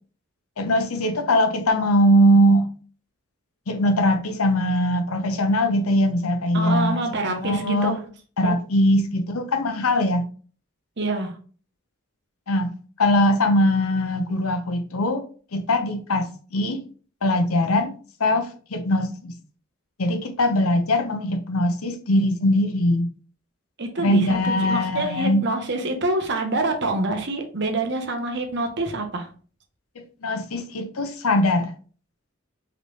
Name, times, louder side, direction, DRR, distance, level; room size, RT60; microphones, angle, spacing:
voice 1, 0.6-2.7 3.7-7.0 7.3-8.0 8.4-10.2 12.5-12.7 13.0-15.2 15.5-16.8 17.2-17.9 18.2-19.3 20.0-23.1 24.0-25.4 30.2-31.7, left 1 dB, 85° left, 0.8 m, -21 dB
voice 2, 6.5-8.0 8.4-8.5 11.0-11.4 23.8-29.3, right 2 dB, 50° right, 0.9 m, -26 dB
4.9 x 3.3 x 3.1 m
head